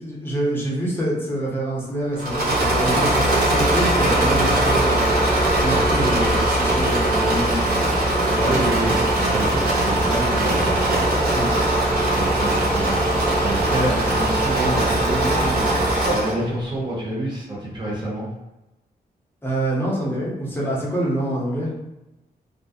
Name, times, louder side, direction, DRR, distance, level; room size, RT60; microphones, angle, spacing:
voice 1, 0.0-5.1 5.6-7.8 11.3-11.5 19.4-21.7, right 1 dB, 15° left, -5 dB, 0.6 m, -26 dB
Engine / Mechanisms, 2.2-16.4, right 1 dB, 65° right, 0.7 m, -20 dB
voice 2, 8.3-11.4 12.1-13.0 13.4-18.3, right 1 dB, 25° right, -6 dB, 0.8 m, -28 dB
2.4 x 2.0 x 2.5 m, 0.96 s
wide cardioid pair, 175°, 17 cm